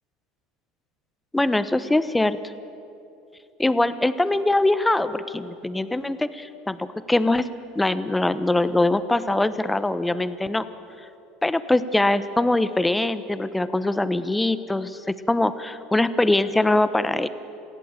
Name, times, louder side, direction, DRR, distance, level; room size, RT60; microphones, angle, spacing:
voice 1, 1.3-2.4 3.6-7.5 7.7-10.6 11.4-17.3, left 2 dB, 10° left, 13 dB, 1.1 m, -22 dB
27.5 x 16.5 x 7.4 m, 2.7 s
hypercardioid pair, 70°, 0 cm